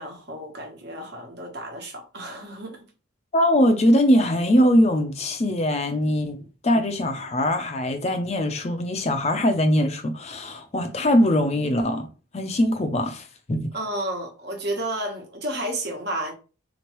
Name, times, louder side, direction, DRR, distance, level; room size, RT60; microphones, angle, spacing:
voice 1, 0.0-2.8 13.7-16.3, right 1 dB, 55° right, 1.2 m, -31 dB
voice 2, 3.3-12.1 12.3-13.7, equal, 30° left, 0.5 m, -22 dB
4.2 x 3.0 x 3.0 m
head